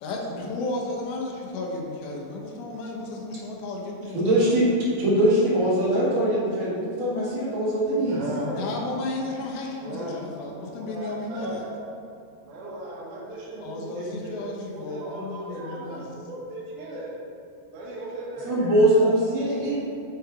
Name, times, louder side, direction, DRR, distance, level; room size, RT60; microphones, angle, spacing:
voice 1, 0.0-4.2 8.4-11.6 13.6-16.1, left 2 dB, 80° left, -1 dB, 3.0 m, -33 dB
voice 2, 4.1-4.6 5.0-8.2 18.4-19.8, right 1 dB, 50° right, -9 dB, 1.9 m, -22 dB
voice 3, 8.0-8.6 9.8-10.3 10.8-11.7 12.4-17.1 17.7-19.1, right 1 dB, 70° right, -6 dB, 1.9 m, -37 dB
9.0 x 3.2 x 4.6 m, 2.6 s
omnidirectional pair, 5.1 m